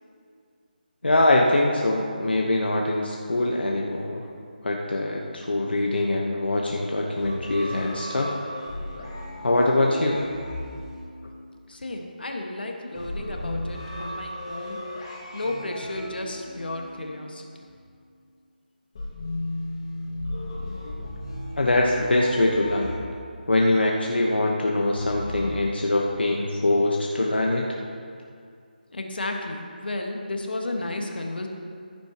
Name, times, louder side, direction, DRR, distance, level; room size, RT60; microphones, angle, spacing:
voice 1, 1.0-4.2 4.6-8.4 9.4-10.2 21.6-22.9 23.5-27.7, left 2 dB, 85° left, -1 dB, 1.2 m, -23 dB
sound 1, 7.2-11.8 12.9-17.7 19.0-23.6 25.0-25.6, left 1 dB, 35° left, 2.0 m, -36 dB
voice 2, 11.7-14.8 15.3-17.5 28.9-31.5, left 2 dB, 70° left, 2 dB, 1.6 m, -33 dB
14.5 x 10.5 x 3.0 m, 2.3 s
figure-of-eight pair, 170°, 5 cm